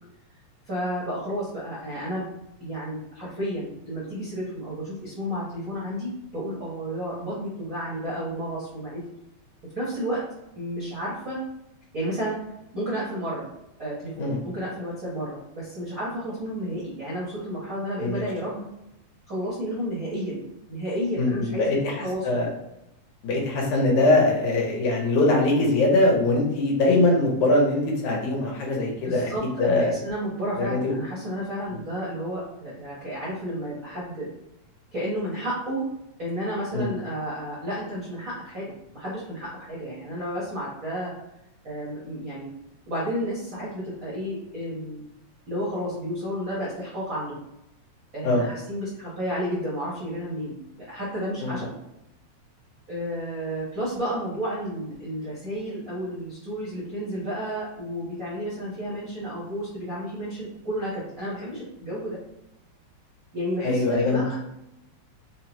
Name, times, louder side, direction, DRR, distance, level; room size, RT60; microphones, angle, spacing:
voice 1, 0.7-2.3 2.6-9.0 9.7-10.2 10.6-11.4 11.9-12.4 12.7-13.4 13.8-18.6 19.3-20.4 20.7-22.4 29.0-34.3 34.9-35.9 36.2-41.1 41.6-42.5 42.9-45.1 45.5-47.4 48.1-51.7 52.9-62.2 63.3-64.3, equal, 80° right, -8 dB, 0.7 m, -31 dB
voice 2, 21.2-22.0 22.2-22.5 23.2-29.3 29.6-30.0 30.6-30.9 36.7-36.9 48.2-48.5 51.4-51.6 63.6-64.4, left 2 dB, 80° left, -1 dB, 2.2 m, -22 dB
5.2 x 2.0 x 2.9 m, 0.86 s
omnidirectional pair, 3.3 m